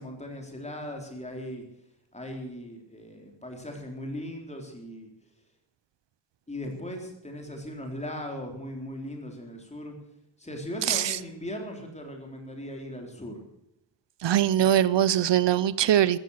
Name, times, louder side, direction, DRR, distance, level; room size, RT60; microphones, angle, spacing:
voice 1, 0.0-1.6 2.1-5.1 6.5-9.9 10.4-13.4, left 1 dB, 15° left, 2 dB, 4.0 m, -38 dB
voice 2, 14.2-16.2, right 11 dB, 75° right, 18 dB, 0.7 m, -22 dB
14.5 x 14.5 x 6.6 m, 0.80 s
wide cardioid pair, 155°, 43 cm